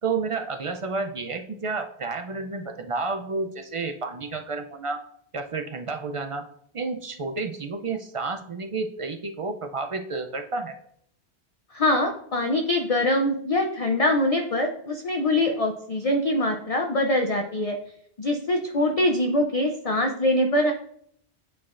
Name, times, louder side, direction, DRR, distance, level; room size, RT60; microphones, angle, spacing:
voice 1, 0.0-5.0 5.3-6.4 6.7-10.7, right 4 dB, 55° right, 5 dB, 0.3 m, -30 dB
voice 2, 11.7-17.8 18.2-20.7, left 1 dB, 45° left, 4 dB, 0.5 m, -23 dB
8.4 x 4.7 x 2.4 m, 0.69 s
omnidirectional pair, 1.1 m